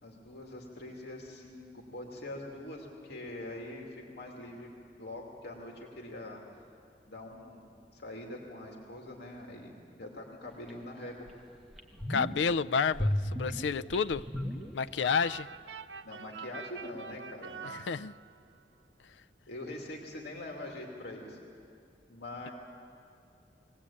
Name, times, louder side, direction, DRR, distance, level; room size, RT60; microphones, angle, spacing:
voice 1, 0.0-4.7 5.0-6.4 7.1-7.6 7.9-11.3 16.0-17.7 19.5-21.4 22.1-22.5, left 1 dB, 65° left, 0 dB, 2.6 m, -43 dB
sound 1, 10.7-10.8 11.3-11.4 11.7-12.5 12.9-15.2 15.4-15.5, equal, ahead, 1.8 m, -34 dB
voice 2, 12.1-14.3 14.7-15.5 17.6-18.1, left 5 dB, 85° left, 15 dB, 0.4 m, -30 dB
sound 2, 15.0-18.5, right 6 dB, 80° right, 0.8 m, -45 dB
22.0 x 18.5 x 8.6 m, 2.5 s
head